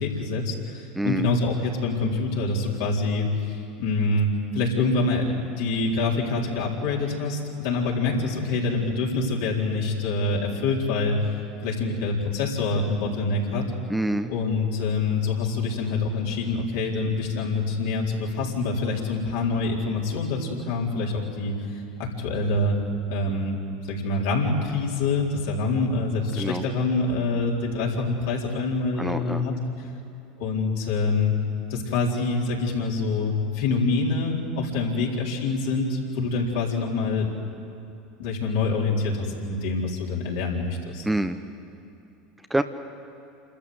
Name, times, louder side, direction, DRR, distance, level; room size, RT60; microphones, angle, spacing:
voice 1, 0.0-11.4 11.6-13.7 14.3-22.8 23.1-23.6 23.9-29.5 30.4-31.3 31.7-37.3 38.2-41.1, left 3 dB, 70° left, -3 dB, 4.0 m, -26 dB
voice 2, 1.0-1.3 13.9-14.3 26.4-26.6 29.0-29.4 41.0-41.4 42.5-42.6, right 1 dB, 5° right, 8 dB, 1.0 m, -26 dB
28.0 x 13.5 x 7.9 m, 2.8 s
hypercardioid pair, 80°, 0 cm